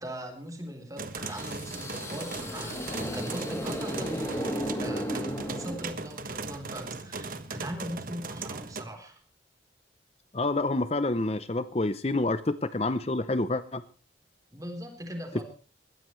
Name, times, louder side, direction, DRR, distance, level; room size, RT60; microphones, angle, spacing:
voice 1, 0.0-9.2 14.5-15.4, equal, 20° right, 4 dB, 3.7 m, -40 dB
sound 1, 1.0-8.8, right 3 dB, 45° right, 1.3 m, -38 dB
sound 2, 1.2-6.3, equal, 15° left, 2.8 m, -35 dB
voice 2, 10.3-13.8, left 2 dB, 35° left, 13 dB, 0.6 m, -28 dB
21.5 x 15.5 x 3.2 m, 0.36 s
head